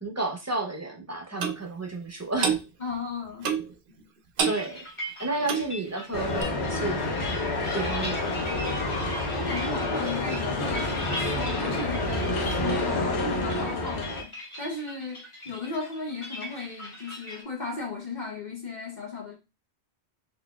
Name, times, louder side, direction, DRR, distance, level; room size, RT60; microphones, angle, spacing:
voice 1, 0.0-2.6 4.4-4.9 5.2-7.1 7.7-8.4, right 2 dB, 20° right, 0.5 m, -31 dB
Clock, 1.4-1.6 2.4-2.6 3.4-3.7 4.4-4.6 5.4-5.7 6.4-6.5, right 7 dB, 60° right, 0.7 m, -26 dB
voice 2, 2.8-3.5 9.3-19.3, left 4 dB, 45° left, 0.9 m, -36 dB
sound 1, 4.4-17.4, equal, 30° left, 1.3 m, -40 dB
sound 2, 6.1-14.2, left 2 dB, 85° left, 1.1 m, -28 dB
4.1 x 2.8 x 2.2 m
omnidirectional pair, 1.1 m